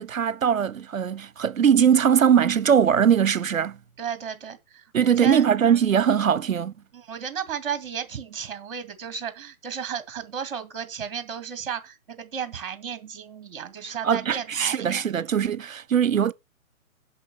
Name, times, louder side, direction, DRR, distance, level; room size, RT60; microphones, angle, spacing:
voice 1, 0.0-3.8 4.9-6.7 14.0-16.3, right 8 dB, 70° right, 0.9 m, -21 dB
voice 2, 4.0-5.5 6.9-15.1, right 7 dB, 40° right, 2.1 m, -34 dB
8.0 x 6.2 x 6.4 m
figure-of-eight pair, 140°, 42 cm